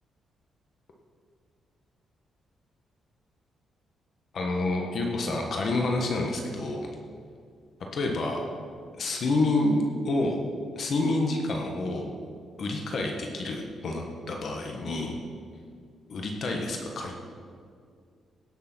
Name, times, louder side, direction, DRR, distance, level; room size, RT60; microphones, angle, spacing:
voice 1, 4.3-6.9 7.9-8.4 9.0-10.4 10.7-12.1 12.6-15.2 16.1-17.2, left 2 dB, 50° left, 1 dB, 1.4 m, -28 dB
17.0 x 6.7 x 6.2 m, 2.2 s
cardioid pair, 145°, 0 cm